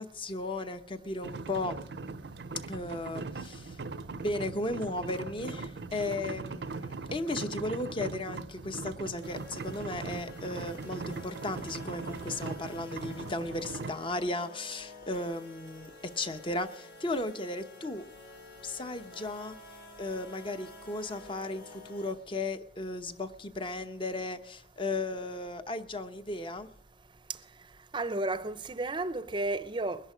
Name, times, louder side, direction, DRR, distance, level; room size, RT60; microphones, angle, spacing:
voice 1, 0.0-1.8 2.7-3.8 4.2-18.0 18.6-19.5 20.0-26.7, left 2 dB, 30° left, 0.9 m, -35 dB
sound 1, 1.2-13.9, right 3 dB, 65° right, 0.6 m, -40 dB
sound 2, 9.2-22.1, left 2 dB, 85° left, 4.2 m, -50 dB
voice 2, 27.9-30.0, right 2 dB, 25° right, 0.6 m, -32 dB
21.0 x 11.0 x 5.0 m
head